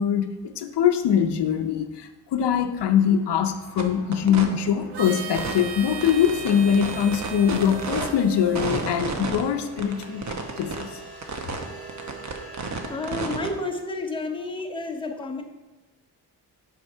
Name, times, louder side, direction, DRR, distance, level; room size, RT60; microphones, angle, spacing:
voice 1, 0.0-10.2 10.6-10.9, left 8 dB, 80° left, 7 dB, 0.7 m, -23 dB
sound 1, 3.0-13.4, right 3 dB, 65° right, 1.6 m, -44 dB
sound 2, 3.8-3.9 4.1-4.4 5.3-5.6 6.0-8.1 8.5-9.4 9.8-10.8 11.2-11.6 11.9-13.5, right 4 dB, 45° right, 1.0 m, -30 dB
Harmonica, 4.9-9.7, right 5 dB, 85° right, 0.8 m, -38 dB
voice 2, 12.8-15.4, left 2 dB, 10° left, 2 dB, 0.9 m, -31 dB
7.9 x 4.7 x 5.5 m, 1.1 s
wide cardioid pair, 120°, 40 cm